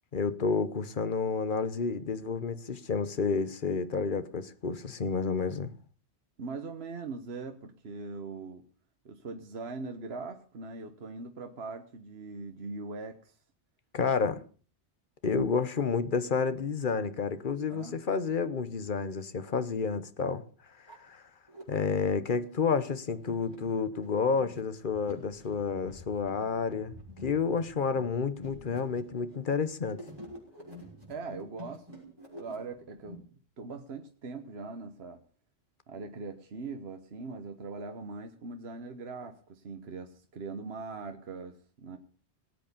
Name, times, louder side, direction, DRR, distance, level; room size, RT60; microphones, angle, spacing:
voice 1, 0.1-5.7 13.9-14.4 15.2-20.4 21.1-21.2 21.7-26.9 27.2-30.0, left 5 dB, 50° left, 1.2 m, -30 dB
voice 2, 6.4-8.6 9.0-13.3 17.7-18.0 31.1-32.0 32.3-33.3 33.6-35.2 35.9-42.0, right 4 dB, 70° right, 1.4 m, -41 dB
sound 1, 20.7-21.6 22.3-33.1, left 1 dB, 20° right, 6.0 m, -49 dB
18.5 x 8.4 x 6.8 m
omnidirectional pair, 1.1 m